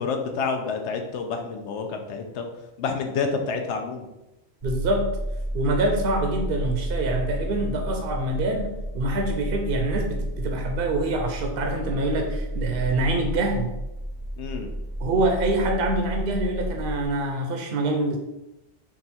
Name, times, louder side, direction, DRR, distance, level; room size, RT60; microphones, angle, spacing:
voice 1, 0.0-2.5 2.8-4.1 14.4-14.7, left 5 dB, 80° left, 4 dB, 0.9 m, -28 dB
sound 1, 4.6-17.0, equal, 20° right, 0.5 m, -31 dB
voice 2, 4.6-5.1 5.5-13.7 15.0-18.2, right 2 dB, 65° right, 3 dB, 0.7 m, -25 dB
3.8 x 2.3 x 4.1 m, 0.94 s
omnidirectional pair, 1.2 m